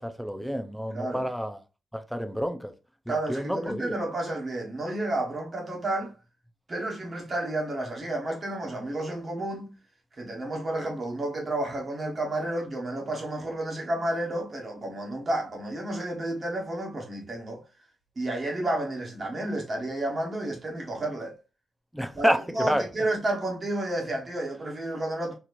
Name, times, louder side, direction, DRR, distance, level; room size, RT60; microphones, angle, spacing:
voice 1, 0.0-1.6 1.9-2.7 3.1-4.0 21.9-22.8, equal, ahead, 0.4 m, -29 dB
voice 2, 0.9-1.3 3.1-6.1 6.7-9.7 10.2-17.6 18.2-21.4 22.1-25.3, right 1 dB, 30° right, 1.3 m, -31 dB
4.2 x 3.0 x 2.5 m
wide cardioid pair, 145°, 0 cm